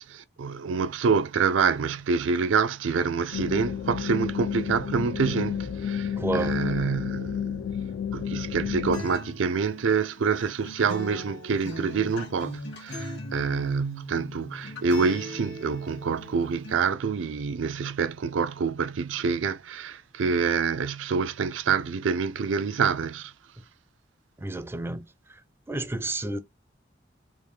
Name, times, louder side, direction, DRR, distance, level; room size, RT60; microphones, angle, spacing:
voice 1, 0.0-7.6 8.1-23.3, right 5 dB, 90° right, 0.4 m, -27 dB
sound 1, 3.3-9.0, left 8 dB, 90° left, 0.4 m, -31 dB
voice 2, 6.2-6.5 24.4-25.1 25.7-26.4, right 2 dB, 10° right, 0.4 m, -30 dB
Acoustic guitar, 8.9-16.9, equal, 65° left, 1.4 m, -39 dB
3.5 x 2.5 x 3.1 m
head